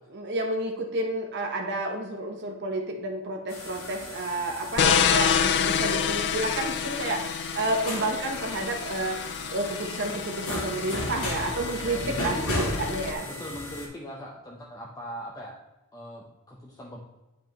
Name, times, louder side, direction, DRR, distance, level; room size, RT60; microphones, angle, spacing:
voice 1, 0.1-13.3, right 2 dB, 50° right, 3 dB, 0.8 m, -30 dB
sound 1, 3.5-13.9, left 1 dB, 65° left, 2.2 m, -36 dB
sound 2, 4.8-13.1, left 8 dB, 50° left, 0.4 m, -28 dB
voice 2, 12.0-12.8 13.2-15.5 15.9-17.0, equal, 15° left, -2 dB, 0.7 m, -39 dB
9.2 x 5.3 x 2.9 m, 1.1 s
head